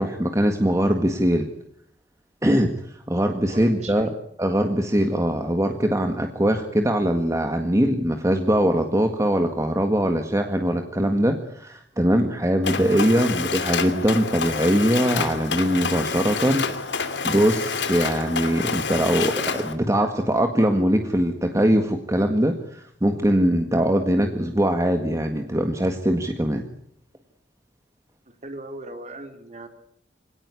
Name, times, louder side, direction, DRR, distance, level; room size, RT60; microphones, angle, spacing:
voice 1, 0.0-1.5 2.4-4.1 4.4-26.6, equal, 15° right, 5 dB, 1.8 m, -22 dB
voice 2, 3.5-4.1 13.1-13.4 28.3-29.7, right 1 dB, 40° right, 6 dB, 3.8 m, -38 dB
Mechanisms, 12.6-19.7, left 5 dB, 80° left, 3.0 m, -28 dB
25.5 x 18.0 x 9.9 m, 0.70 s
head